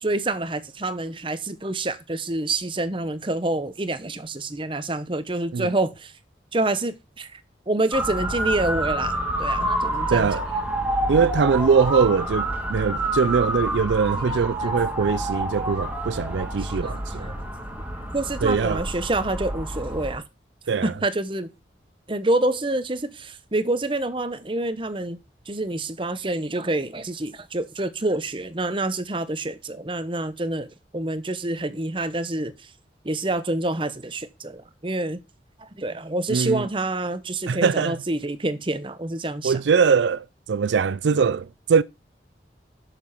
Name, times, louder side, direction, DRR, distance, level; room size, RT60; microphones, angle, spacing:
voice 1, 0.0-6.1 6.5-7.4 7.7-10.3 14.3-14.7 15.0-15.1 16.6-17.4 18.1-20.2 20.8-21.5 22.1-25.2 25.5-30.7 30.9-32.7 33.0-35.2 35.6-39.6, right 2 dB, 30° right, 0.9 m, -27 dB
Motor vehicle (road) / Siren, 7.9-20.2, right 1 dB, 10° right, 2.4 m, -28 dB
voice 2, 10.1-10.5 11.1-17.3 18.4-18.8 20.7-20.9 36.3-36.7 37.5-38.0 39.4-41.8, right 5 dB, 85° right, 0.4 m, -22 dB
7.1 x 7.0 x 5.6 m
head